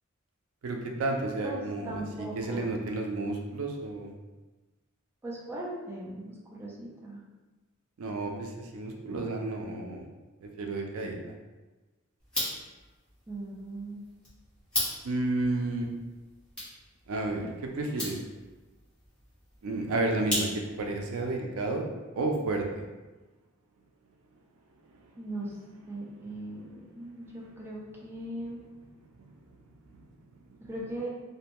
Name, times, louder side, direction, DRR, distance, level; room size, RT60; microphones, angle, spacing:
voice 1, 0.6-4.1 8.0-10.0 10.4-11.2 15.0-15.9 17.1-18.2 19.6-21.8 22.1-22.8 24.9-25.0 26.5-26.6 29.9-30.1, right 2 dB, 90° right, 2 dB, 0.4 m, -31 dB
voice 2, 1.4-2.8 5.2-7.2 13.3-14.0 25.2-25.5 25.9-28.6 30.7-31.1, right 1 dB, 10° right, -4 dB, 0.4 m, -39 dB
sound 1, 12.2-20.9, left 1 dB, 5° left, 0.9 m, -38 dB
2.6 x 2.1 x 2.9 m, 1.2 s
head